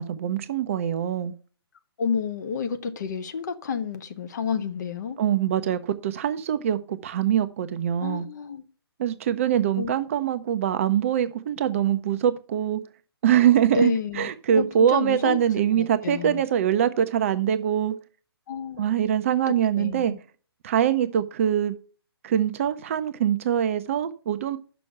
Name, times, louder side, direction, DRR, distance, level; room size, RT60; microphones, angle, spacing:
voice 1, 0.0-1.3 5.2-8.2 9.0-12.8 13.2-13.9 14.2-17.9 18.8-20.1 20.6-21.7 22.2-24.6, right 10 dB, 30° right, 0.6 m, -23 dB
voice 2, 2.0-5.2 8.0-8.6 9.7-9.9 13.7-15.4 15.8-16.4 18.5-18.9 19.8-20.2, left 6 dB, 45° left, 1.0 m, -30 dB
6.1 x 6.0 x 5.8 m
figure-of-eight pair, 135°, 13 cm